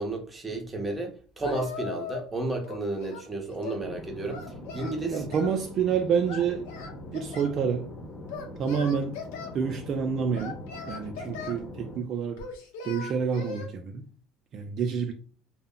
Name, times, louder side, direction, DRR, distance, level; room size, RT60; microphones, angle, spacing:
voice 1, 0.0-4.5 4.7-5.3, right 2 dB, 15° right, 0.7 m, -32 dB
Singing, 1.4-2.3 2.6-3.9 4.3-5.6 6.3-7.6 8.3-9.5 10.3-11.6 12.4-13.7, left 5 dB, 90° left, 0.6 m, -39 dB
sound 1, 3.8-12.0, left 1 dB, 40° left, 0.9 m, -42 dB
voice 2, 5.1-6.7 7.1-7.9 8.6-9.1 9.5-10.6 10.9-12.5 12.8-14.0 14.5-15.1, right 6 dB, 45° right, 0.3 m, -28 dB
2.1 x 2.0 x 3.6 m
supercardioid pair, 110°, 0 cm